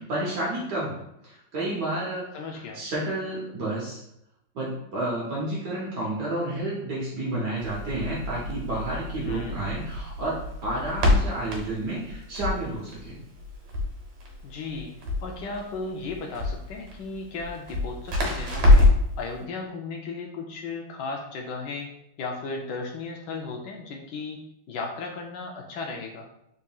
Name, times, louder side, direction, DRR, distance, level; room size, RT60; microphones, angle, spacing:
voice 1, 0.0-4.0 4.5-13.2, right 1 dB, 60° right, -6 dB, 1.3 m, -31 dB
voice 2, 2.3-2.8 9.2-9.6 14.4-15.0 15.2-18.9 19.2-21.9 22.2-24.4 24.7-26.3, left 3 dB, 75° left, 1 dB, 1.0 m, -35 dB
Crackle, 7.6-19.1, left 2 dB, 90° right, 1.8 m, -26 dB
4.1 x 3.6 x 2.3 m, 0.81 s
omnidirectional pair, 2.3 m